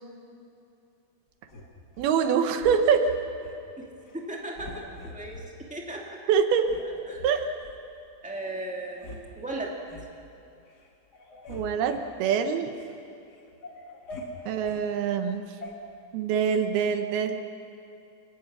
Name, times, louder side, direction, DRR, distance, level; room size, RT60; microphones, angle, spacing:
sound 1, 1.5-2.1 2.6-3.6 4.0-4.2 4.5-5.5 6.0-6.1 6.6-7.8 8.4-8.5 8.8-9.2 9.5-10.1 10.6-10.9 11.1-12.9 13.3-14.8 15.6-15.7, left 1 dB, 35° left, 2.1 m, -43 dB
voice 1, 2.0-3.1 6.3-6.7 7.2-7.4 11.5-12.7 14.5-15.4 16.1-17.4, right 7 dB, 90° right, 7 dB, 3.1 m, -24 dB
voice 2, 4.1-5.4 5.7-6.3 7.1-7.2 8.2-9.1 9.4-9.7, right 2 dB, 5° right, -1 dB, 1.3 m, -36 dB
28.5 x 16.5 x 6.2 m, 2.7 s
omnidirectional pair, 4.3 m